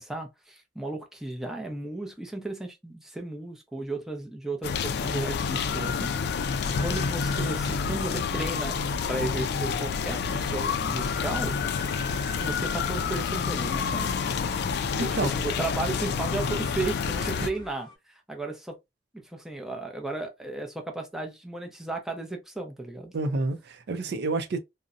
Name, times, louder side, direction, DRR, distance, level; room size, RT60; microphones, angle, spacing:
voice 1, 0.0-6.5 6.8-8.8 9.1-11.5 12.4-14.1 14.9-18.8 19.1-23.1, right 2 dB, ahead, 0.4 m, -34 dB
sound 1, 4.6-17.5, left 5 dB, 65° left, 0.3 m, -28 dB
sound 2, 10.2-18.0, left 1 dB, 25° left, 0.8 m, -49 dB
voice 2, 15.0-15.3 23.1-24.6, right 3 dB, 65° right, 0.4 m, -29 dB
2.5 x 2.0 x 2.4 m
head